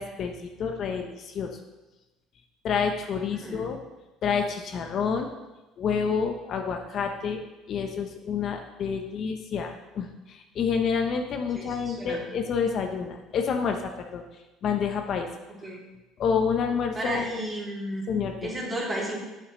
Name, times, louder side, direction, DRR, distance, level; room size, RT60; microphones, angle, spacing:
voice 1, 0.0-1.6 2.6-3.8 4.2-5.3 5.8-7.4 7.7-14.2 14.6-15.3 16.2-17.5 18.1-18.5, left 6 dB, 50° left, 4 dB, 0.8 m, -28 dB
voice 2, 3.3-3.7 11.5-12.2 15.6-15.8 16.9-18.0 18.4-19.2, right 1 dB, 20° right, -4 dB, 2.5 m, -33 dB
8.4 x 6.9 x 3.1 m, 1.1 s
cardioid pair, 110°, 0 cm